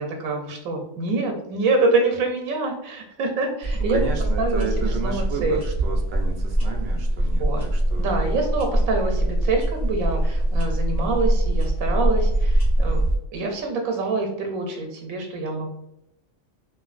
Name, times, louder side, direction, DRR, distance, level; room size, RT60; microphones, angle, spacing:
voice 1, 0.0-4.0 4.4-5.6 7.2-7.7 8.0-13.0 13.3-15.7, right 3 dB, 85° right, 2 dB, 1.0 m, -26 dB
sound 1, 3.6-13.2, right 1 dB, 45° left, 1.5 m, -23 dB
voice 2, 3.9-8.1, right 5 dB, 65° right, 2 dB, 0.6 m, -32 dB
3.1 x 2.4 x 2.4 m, 0.85 s
omnidirectional pair, 1.4 m